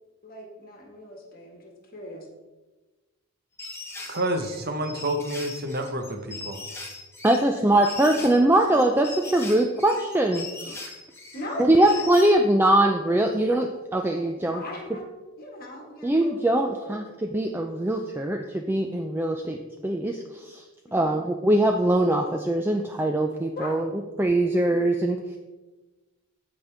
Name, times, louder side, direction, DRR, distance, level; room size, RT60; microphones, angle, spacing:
voice 1, 0.2-2.3 8.1-8.4 11.3-13.2 13.5-13.7 14.5-15.0 15.4-16.4 16.8-17.2 20.9-21.2 23.5-23.8 24.7-24.8, left 1 dB, 40° left, 0 dB, 1.7 m, -40 dB
sound 1, 3.6-12.3, left 3 dB, 10° left, 1.2 m, -39 dB
voice 2, 4.1-6.7, right 1 dB, 45° right, 6 dB, 1.0 m, -29 dB
voice 3, 7.2-10.9 11.6-14.6 16.0-20.6 20.9-23.9 24.2-25.4, right 1 dB, 10° right, 3 dB, 0.3 m, -22 dB
15.5 x 5.2 x 3.4 m, 1.2 s
head